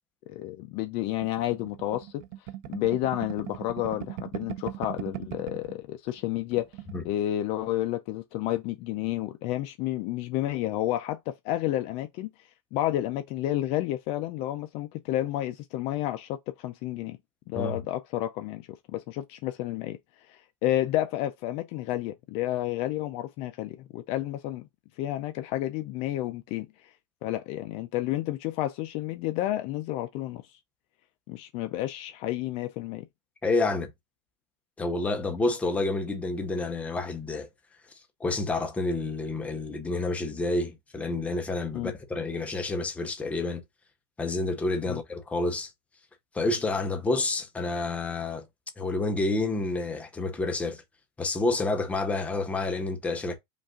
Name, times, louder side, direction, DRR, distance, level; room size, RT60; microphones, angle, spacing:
voice 1, 0.3-2.1 2.7-6.7 7.0-12.3 12.7-17.2 17.5-18.6 18.9-20.0 20.3-24.7 25.0-26.7 27.2-30.4 31.3-33.0 41.7-41.9 44.9-45.0, left 14 dB, 45° left, 0.4 m, -30 dB
sound 1, 1.2-5.7 6.1-6.2 6.4-7.0, right 16 dB, 55° right, 0.5 m, -39 dB
voice 2, 33.4-33.9 34.8-37.5 38.2-43.6 44.2-45.7 46.3-48.5 48.8-50.8 51.2-53.4, left 2 dB, 10° left, 0.7 m, -29 dB
5.3 x 2.5 x 3.6 m
supercardioid pair, 155°, 15 cm